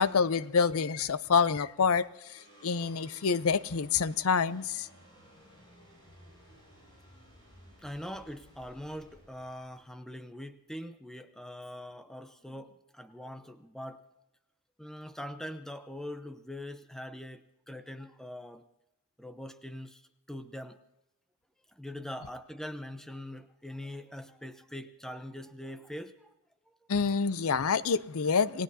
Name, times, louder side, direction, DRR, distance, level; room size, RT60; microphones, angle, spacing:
voice 1, 0.0-4.9 26.9-28.6, left 5 dB, 75° left, 0.6 m, -27 dB
sound 1, 2.2-10.7, equal, 20° left, 7.1 m, -57 dB
voice 2, 7.8-14.0 14.8-18.6 19.2-20.0 20.3-20.8 21.7-26.3, left 1 dB, ahead, 0.7 m, -42 dB
28.5 x 18.0 x 2.8 m
head